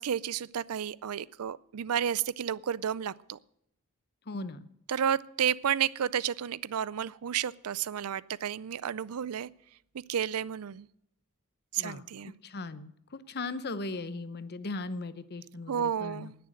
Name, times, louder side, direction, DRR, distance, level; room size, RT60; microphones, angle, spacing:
voice 1, 0.0-3.4 4.9-9.5 9.9-10.9 11.7-12.3 15.7-16.4, right 8 dB, 80° right, 21 dB, 0.5 m, -31 dB
voice 2, 4.3-4.7 11.8-16.3, left 3 dB, 45° left, 14 dB, 0.8 m, -38 dB
19.0 x 6.9 x 7.7 m, 0.75 s
head